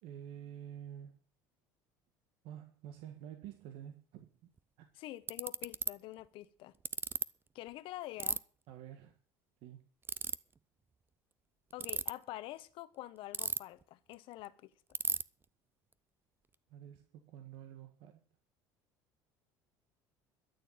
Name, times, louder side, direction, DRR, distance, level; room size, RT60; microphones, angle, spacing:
voice 1, 0.0-1.2 2.4-4.5 4.8-4.9 8.7-9.1 9.6-9.8 16.7-18.2, right 10 dB, 70° right, 1.7 m, -49 dB
Ratchet pawl, 4.6-4.7 5.3-5.9 6.9-7.2 8.2-8.4 10.0-10.4 11.7-12.1 13.3-13.8 14.1-14.2 14.4-14.5 14.9-15.2, right 5 dB, 25° right, 0.6 m, -34 dB
voice 2, 4.9-6.7 7.5-8.4 11.7-14.7, left 16 dB, 65° left, 1.1 m, -46 dB
13.0 x 6.9 x 8.8 m
supercardioid pair, 90°, 10 cm